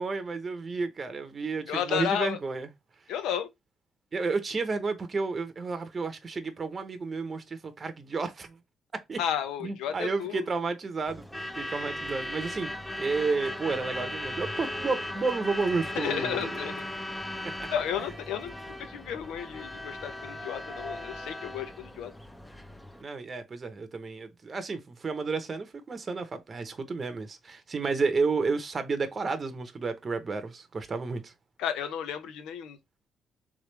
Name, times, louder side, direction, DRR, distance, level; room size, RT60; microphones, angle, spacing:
voice 1, 0.0-2.7 4.1-8.6 9.1-9.2 9.6-12.7 13.0-16.6 17.6-17.7 23.0-31.3, right 4 dB, 35° right, 0.8 m, -31 dB
voice 2, 1.7-2.4 3.1-3.5 9.2-10.4 16.0-16.8 17.7-18.5 18.9-22.1 31.6-32.8, left 9 dB, 90° left, 0.7 m, -32 dB
Truck / Alarm, 11.1-23.0, left 1 dB, 10° left, 0.6 m, -37 dB
3.5 x 3.3 x 3.2 m
cardioid pair, 90°, 0 cm